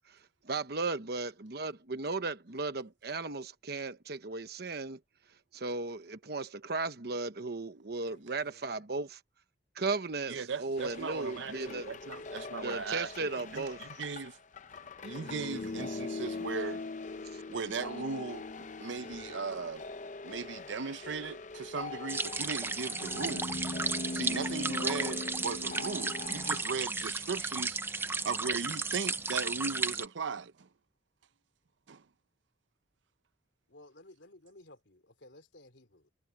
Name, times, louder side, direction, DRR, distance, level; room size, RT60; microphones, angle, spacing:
voice 1, 0.4-5.0 5.5-9.2 9.7-11.9 12.6-13.8 17.3-17.4, right 3 dB, 55° right, 1.0 m, -36 dB
voice 2, 8.1-8.9 12.1-12.8 33.7-36.1, left 1 dB, 75° left, 3.7 m, -57 dB
voice 3, 10.3-14.4 15.0-16.8 17.5-19.8 20.2-23.5 24.1-30.7 31.9-32.0, right 5 dB, 80° right, 0.6 m, -38 dB
sound 1, 10.8-26.6, left 3 dB, 40° left, 0.6 m, -41 dB
sound 2, 22.1-30.1, right 3 dB, 10° right, 0.6 m, -34 dB
head